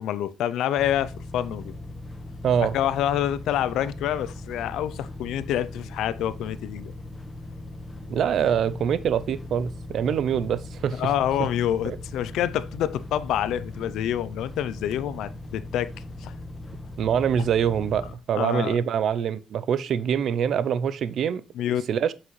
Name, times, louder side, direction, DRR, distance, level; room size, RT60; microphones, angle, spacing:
voice 1, 0.0-1.7 2.6-6.9 11.0-15.9 16.2-16.3 18.0-18.8 21.5-21.9, left 11 dB, 85° left, 0.5 m, -27 dB
sound 1, 0.8-18.1, left 2 dB, 15° left, 1.2 m, -39 dB
voice 2, 2.4-2.7 8.1-11.0 11.8-12.0 17.0-18.0 18.3-21.4 21.9-22.1, right 8 dB, 65° right, 0.5 m, -24 dB
7.6 x 5.8 x 3.2 m
cardioid pair, 90°, 0 cm